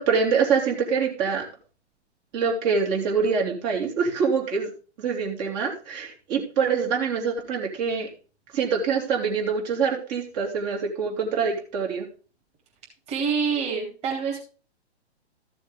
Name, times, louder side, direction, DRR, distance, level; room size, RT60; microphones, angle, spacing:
voice 1, 0.0-1.4 2.3-4.7 5.0-8.1 8.5-12.1, right 5 dB, 35° right, 1 dB, 3.7 m, -25 dB
voice 2, 13.1-14.4, right 5 dB, 20° right, -2 dB, 3.4 m, -26 dB
14.5 x 6.9 x 3.7 m, 0.36 s
hypercardioid pair, 135°, 34 cm